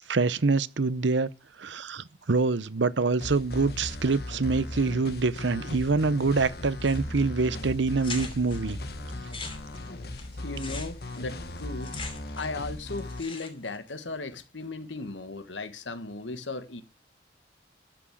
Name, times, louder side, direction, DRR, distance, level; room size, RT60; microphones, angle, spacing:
voice 1, 0.1-1.3 1.6-8.8, right 3 dB, 80° right, 0.7 m, -25 dB
sound 1, 3.2-13.2, left 1 dB, 55° left, 1.3 m, -37 dB
sound 2, 6.8-7.3 7.6-7.7 8.0-8.6 9.1-12.7 12.9-13.8, left 4 dB, 30° left, 2.9 m, -41 dB
voice 2, 10.4-11.9 12.4-16.8, left 3 dB, 85° left, 1.5 m, -36 dB
13.5 x 6.2 x 7.8 m
head